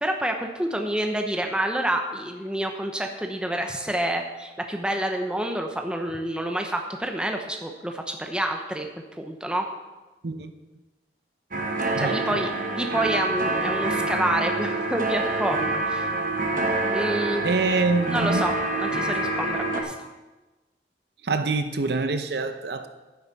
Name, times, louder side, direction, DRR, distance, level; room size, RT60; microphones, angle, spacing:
voice 1, 0.0-8.9 9.2-9.7 12.0-16.0 16.9-17.5 18.1-19.9, right 1 dB, 5° right, 0.8 m, -28 dB
sound 1, 11.5-19.8, right 2 dB, 50° right, 1.2 m, -26 dB
voice 2, 11.9-12.3 17.4-18.4 21.2-22.9, right 3 dB, 70° right, 0.7 m, -25 dB
11.0 x 9.7 x 4.1 m
head